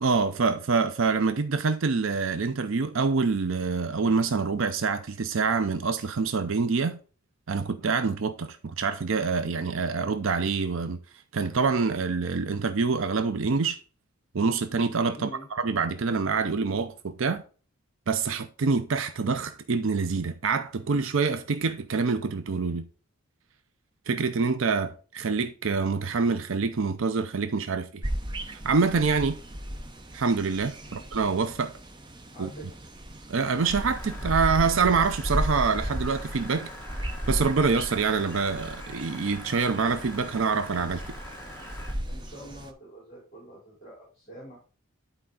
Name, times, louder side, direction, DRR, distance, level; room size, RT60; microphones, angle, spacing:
voice 1, 0.0-7.0 7.5-11.0 11.3-13.8 14.3-17.4 18.1-22.9 24.1-28.0 28.5-29.4 30.1-31.7 32.4-32.5 33.3-36.7 37.3-41.1, right 4 dB, 70° right, 0.5 m, -26 dB
voice 2, 15.2-15.5 30.8-31.0 32.3-32.7 42.0-44.6, right 1 dB, 30° left, 3.8 m, -45 dB
sound 1, 28.0-42.7, equal, 20° right, 0.7 m, -35 dB
sound 2, 33.6-41.9, left 1 dB, 10° left, 1.5 m, -44 dB
11.0 x 4.4 x 3.8 m
head